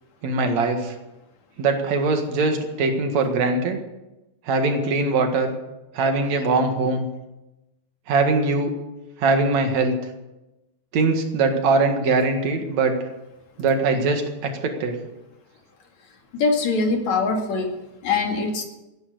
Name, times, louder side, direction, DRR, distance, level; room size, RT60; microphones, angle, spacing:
voice 1, 0.2-0.9 1.6-3.8 4.5-5.5 5.9-7.1 8.1-8.7 9.2-9.9 10.9-13.0 13.6-15.0, right 3 dB, 65° right, 5 dB, 3.1 m, -21 dB
voice 2, 16.3-17.7 18.0-18.6, left 4 dB, 65° left, 3 dB, 3.4 m, -22 dB
15.5 x 10.5 x 8.2 m, 1.0 s
omnidirectional pair, 3.4 m